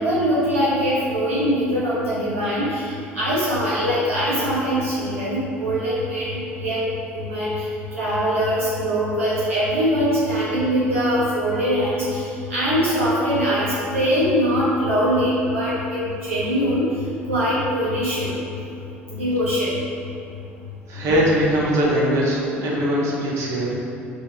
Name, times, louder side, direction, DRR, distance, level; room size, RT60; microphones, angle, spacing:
voice 1, 0.0-6.9 7.1-16.9 17.3-18.4 19.1-19.8, equal, 80° right, -9 dB, 1.0 m, -22 dB
voice 2, 20.9-23.8, equal, 45° right, -5 dB, 1.5 m, -21 dB
4.9 x 4.4 x 4.5 m, 2.7 s
figure-of-eight pair, 60°, 7 cm